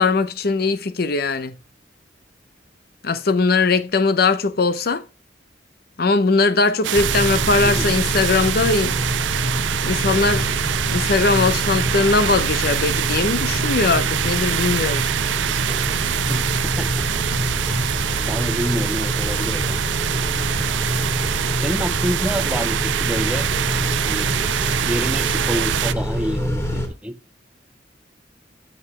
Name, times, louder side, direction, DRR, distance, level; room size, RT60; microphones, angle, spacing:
voice 1, 0.0-1.6 3.0-5.0 6.0-9.0 9.8-10.5 10.9-15.1, left 3 dB, 55° left, 0.7 m, -20 dB
sound 1, 6.8-25.9, right 10 dB, 80° right, 0.4 m, -24 dB
Car / Idling / Accelerating revving vroom, 7.0-26.9, equal, 15° left, 2.0 m, -26 dB
voice 2, 16.3-17.1 18.3-19.8 21.6-23.5 24.1-27.2, equal, 5° right, 0.6 m, -28 dB
7.8 x 7.8 x 3.0 m
head